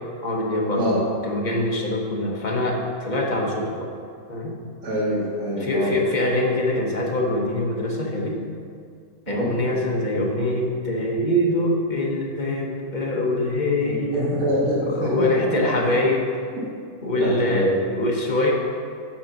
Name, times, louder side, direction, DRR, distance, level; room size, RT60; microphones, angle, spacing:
voice 1, 0.2-3.9 4.3-4.6 5.6-8.4 9.3-14.2 14.9-16.2 17.0-18.5, left 1 dB, 35° left, -1 dB, 1.0 m, -24 dB
voice 2, 4.8-5.9 9.3-9.5 14.1-15.3 17.1-17.7, equal, 70° right, -7 dB, 2.2 m, -24 dB
8.6 x 3.8 x 5.8 m, 2.3 s
omnidirectional pair, 1.5 m